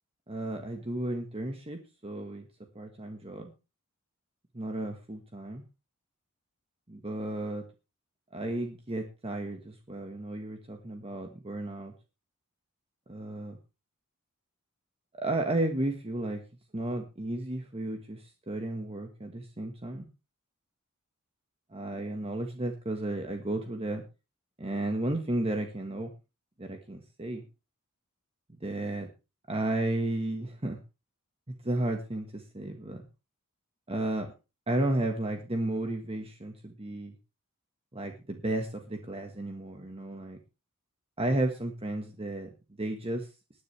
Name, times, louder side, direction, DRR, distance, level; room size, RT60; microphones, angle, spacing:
voice 1, 0.3-2.5 2.7-3.5 4.5-5.6 6.9-7.6 8.3-11.9 13.1-13.6 15.2-16.4 16.7-20.1 21.7-24.0 24.6-26.1 26.6-27.4 28.6-29.1 29.5-30.8 31.5-33.0 33.9-34.3 34.7-37.1 37.9-40.4 41.2-42.5 42.8-43.3, right 1 dB, 25° right, 4 dB, 1.5 m, -33 dB
19.5 x 10.0 x 3.4 m, 0.29 s
head